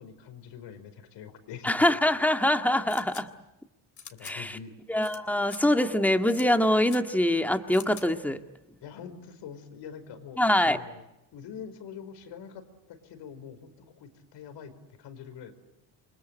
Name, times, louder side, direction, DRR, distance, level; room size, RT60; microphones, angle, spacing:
voice 1, 0.0-1.9 4.1-4.7 8.8-11.0 11.3-14.7 15.0-15.5, left 7 dB, 85° left, 9 dB, 5.2 m, -44 dB
voice 2, 1.6-3.3 4.2-4.6 4.9-8.4 10.4-10.8, left 1 dB, 5° left, 6 dB, 1.9 m, -24 dB
sound 1, 2.9-3.2 4.0-4.3 5.0-5.2 5.4-5.6 6.3-6.5 6.8-7.0 7.7-8.0, left 7 dB, 45° left, 3.3 m, -45 dB
29.5 x 25.0 x 8.0 m, 0.93 s
cardioid pair, 125°, 41 cm